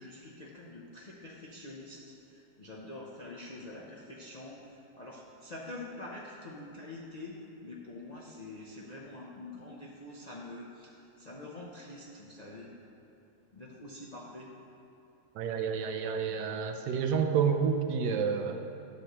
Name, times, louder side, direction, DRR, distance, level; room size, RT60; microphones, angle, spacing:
voice 1, 0.0-12.7 13.5-14.5, left 2 dB, 55° left, -5 dB, 0.4 m, -46 dB
voice 2, 15.3-18.6, right 6 dB, 85° right, 6 dB, 1.2 m, -29 dB
11.0 x 7.9 x 2.9 m, 2.9 s
omnidirectional pair, 1.8 m